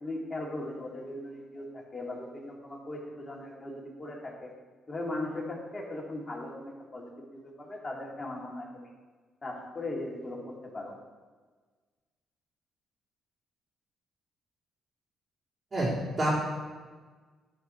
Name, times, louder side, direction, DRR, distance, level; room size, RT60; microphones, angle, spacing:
voice 1, 0.0-4.5 4.9-8.9 9.4-10.9, left 2 dB, 25° left, -2 dB, 2.4 m, -38 dB
voice 2, 15.7-16.3, right 1 dB, 35° right, -9 dB, 3.1 m, -28 dB
11.5 x 4.6 x 5.7 m, 1.4 s
cardioid pair, 90°, 0 cm